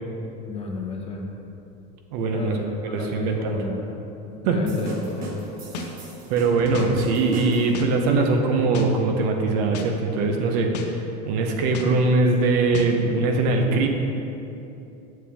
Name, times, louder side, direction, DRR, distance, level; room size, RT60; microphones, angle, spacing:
voice 1, 0.5-1.3 2.3-3.9 4.3-5.4, left 3 dB, 30° left, -1 dB, 1.1 m, -32 dB
voice 2, 2.1-2.6 2.9-3.6 4.4-4.6 6.3-11.0 11.3-13.9, right 3 dB, 75° right, 3 dB, 1.0 m, -21 dB
sound 1, 4.7-7.9, right 3 dB, 45° right, 1.5 m, -38 dB
sound 2, 5.7-5.9 6.7-6.9 7.7-7.9 8.7-8.9 9.7-9.9 10.7-10.9 11.7-11.9 12.7-12.9, left 6 dB, 90° left, 0.7 m, -33 dB
7.7 x 7.2 x 3.6 m, 2.9 s
supercardioid pair, 105°, 21 cm